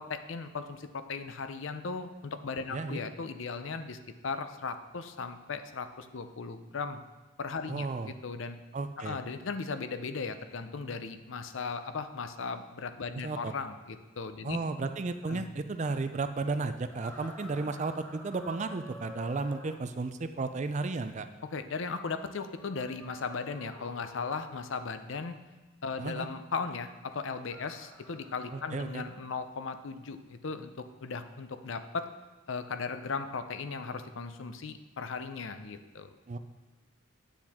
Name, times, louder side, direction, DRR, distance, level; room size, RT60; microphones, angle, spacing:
voice 1, 0.0-4.0 4.2-7.0 7.4-8.6 9.0-14.6 15.3-15.5 21.5-25.4 25.8-32.1 32.5-36.1, left 4 dB, 65° left, 10 dB, 0.6 m, -37 dB
voice 2, 7.7-8.1 8.7-9.2 13.1-13.5 14.4-21.3 26.0-26.3 28.5-29.0 36.3-36.4, right 3 dB, 35° right, 10 dB, 0.4 m, -33 dB
sound 1, 16.9-19.8 22.5-24.6 27.2-29.3, left 1 dB, 10° left, 1.0 m, -50 dB
9.2 x 7.2 x 3.6 m, 1.2 s
head